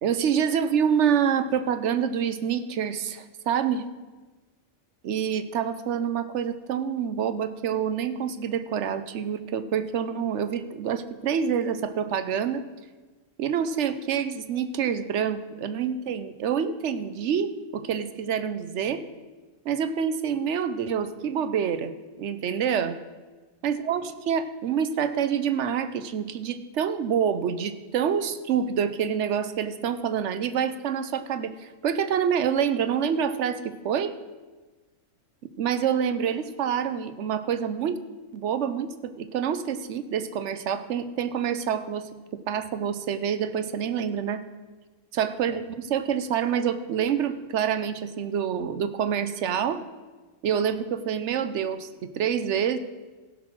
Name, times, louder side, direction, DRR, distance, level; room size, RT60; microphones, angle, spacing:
voice 1, 0.0-3.8 5.0-12.6 13.4-19.0 19.6-21.9 22.2-23.0 23.6-34.1 35.6-38.0 38.3-44.4 45.1-49.8 50.4-52.8, right 8 dB, 65° right, 12 dB, 1.0 m, -27 dB
15.5 x 6.3 x 6.1 m, 1.3 s
omnidirectional pair, 1.4 m